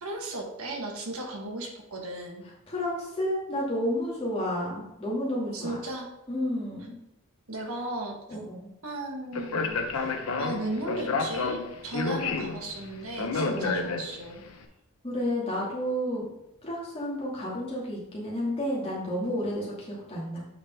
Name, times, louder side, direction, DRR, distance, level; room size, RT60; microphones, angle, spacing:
voice 1, 0.0-2.4 5.5-6.1 7.5-8.2 8.8-14.4, right 2 dB, 85° right, 1 dB, 1.5 m, -36 dB
voice 2, 2.7-5.7 6.3-7.0 8.3-8.7 13.5-13.9 15.0-16.3 16.6-20.4, equal, 25° left, -6 dB, 2.3 m, -31 dB
Speech, 9.3-14.4, left 4 dB, 90° left, 0.9 m, -30 dB
8.3 x 5.0 x 3.6 m, 0.90 s
head